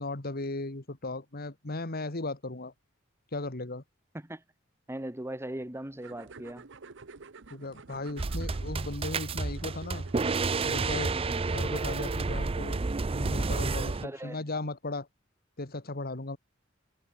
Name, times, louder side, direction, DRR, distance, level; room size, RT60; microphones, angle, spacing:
voice 1, 0.0-2.7 3.3-3.8 7.5-10.1 10.6-11.1 11.5-12.8 13.1-15.1 15.6-16.4, left 2 dB, 50° left, 1.9 m, -36 dB
voice 2, 4.9-6.7 11.1-11.4 14.0-14.4, right 1 dB, 15° right, 1.4 m, -39 dB
sound 1, 6.0-12.2, right 4 dB, 65° right, 1.0 m, -50 dB
sound 2, 8.2-14.0, right 3 dB, 30° right, 0.5 m, -30 dB
head